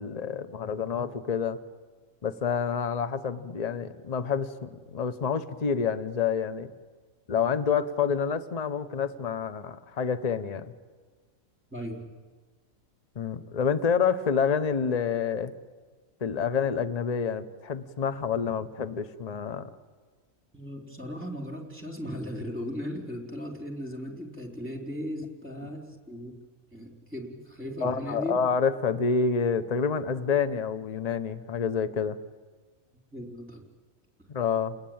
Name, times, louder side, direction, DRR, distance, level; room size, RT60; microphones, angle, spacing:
voice 1, 0.0-1.6 2.2-6.7 7.3-10.7 13.1-15.5 16.2-19.7 25.6-25.7 27.8-32.2 34.3-34.7, left 6 dB, 30° left, 11 dB, 1.0 m, -28 dB
voice 2, 11.7-12.1 20.5-26.3 26.7-28.4 33.1-33.6, equal, 10° right, 2 dB, 3.6 m, -37 dB
29.0 x 20.5 x 8.8 m, 1.4 s
omnidirectional pair, 1.5 m